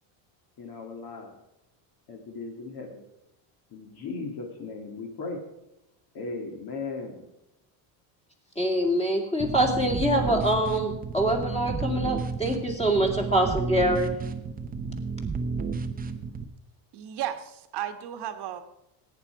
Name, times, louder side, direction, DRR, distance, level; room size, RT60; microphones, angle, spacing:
voice 1, 0.6-1.4 2.1-3.0 3.7-5.4 6.1-7.2, left 3 dB, 45° left, 1 dB, 2.5 m, -37 dB
voice 2, 8.6-14.1, right 1 dB, 10° left, 1 dB, 2.4 m, -25 dB
sound 1, 9.4-16.4, right 4 dB, 20° right, 0.8 m, -32 dB
voice 3, 16.9-18.6, right 11 dB, 50° right, 8 dB, 1.4 m, -34 dB
17.0 x 9.2 x 4.7 m, 0.88 s
cardioid pair, 145°, 50 cm